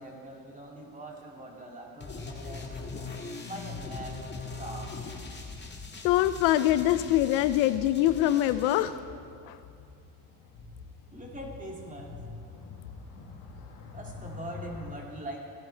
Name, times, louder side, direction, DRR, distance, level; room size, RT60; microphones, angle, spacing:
voice 1, 0.0-3.0 3.4-4.2 4.5-5.1 11.1-12.2 13.9-15.4, right 1 dB, 20° right, -1 dB, 2.4 m, -42 dB
sound 1, 2.0-8.8, left 4 dB, 25° left, 1.7 m, -40 dB
voice 2, 6.0-8.9 9.5-9.6, left 13 dB, 85° left, 13 dB, 0.5 m, -24 dB
sound 2, 8.8-14.9, left 4 dB, 65° left, 1.9 m, -46 dB
16.5 x 10.5 x 3.4 m, 2.5 s
supercardioid pair, 95°, 42 cm